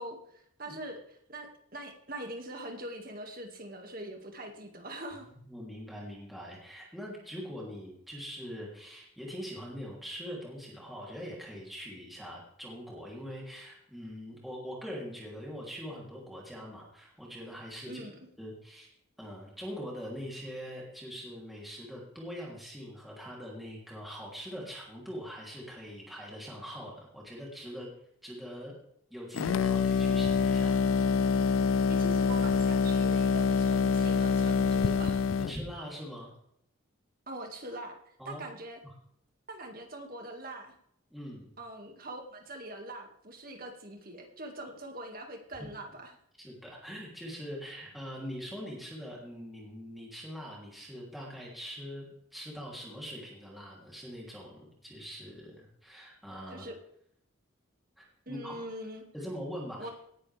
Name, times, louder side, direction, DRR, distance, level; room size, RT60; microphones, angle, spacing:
voice 1, 0.0-5.3 17.9-18.2 31.9-35.2 37.3-38.8 39.5-40.7 41.6-46.2 56.5-56.8 58.3-59.0 59.8-59.9, right 1 dB, 45° right, 3 dB, 2.2 m, -43 dB
voice 2, 5.2-18.0 18.4-18.9 19.2-27.9 28.2-28.7 29.1-31.1 35.4-36.3 38.2-38.4 41.1-41.5 46.4-56.6 58.0-58.6 59.1-59.9, equal, ahead, -4 dB, 3.2 m, -42 dB
sound 1, 29.3-35.6, left 5 dB, 85° left, 0.4 m, -26 dB
18.5 x 10.5 x 3.5 m, 0.73 s
head